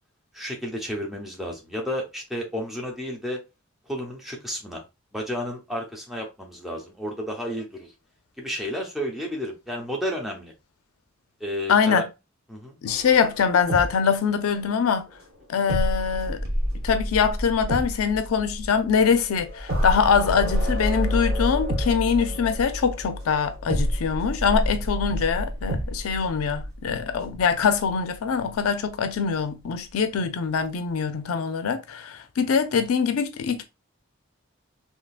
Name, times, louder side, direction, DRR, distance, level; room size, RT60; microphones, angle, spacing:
voice 1, 0.3-3.4 3.9-4.8 5.1-7.9 8.4-10.5 11.4-12.1 12.5-12.8, equal, ahead, 0.6 m, -32 dB
voice 2, 11.7-12.0 12.8-15.1 15.5-16.4 16.8-33.6, left 6 dB, 85° left, 0.4 m, -23 dB
sound 1, 12.9-14.7 14.9-15.0 15.7-28.1 28.5-28.6, equal, 45° right, 0.8 m, -29 dB
3.6 x 2.7 x 2.4 m
head